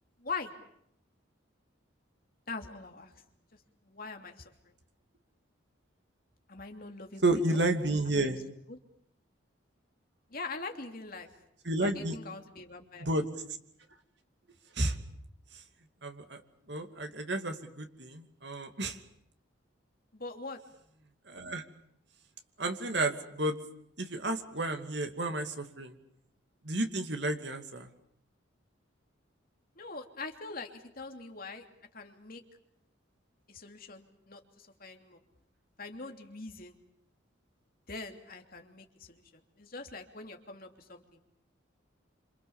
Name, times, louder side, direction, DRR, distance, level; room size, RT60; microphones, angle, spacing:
voice 1, 0.2-0.5 2.5-3.1 3.8-4.5 6.5-7.6 8.1-8.3 8.7-8.8 10.3-11.3 11.8-13.1 20.1-20.6 29.8-31.7 31.9-32.4 33.5-35.2 35.8-36.8 37.9-41.2, left 3 dB, 45° left, 4 dB, 2.9 m, -43 dB
voice 2, 7.2-8.4 11.7-12.2 13.0-13.3 14.8-15.0 16.0-16.4 16.7-19.0 21.3-21.6 22.6-23.6 24.0-25.9 26.6-27.9, right 2 dB, 60° right, 6 dB, 2.6 m, -31 dB
27.0 x 26.5 x 7.2 m, 0.72 s
head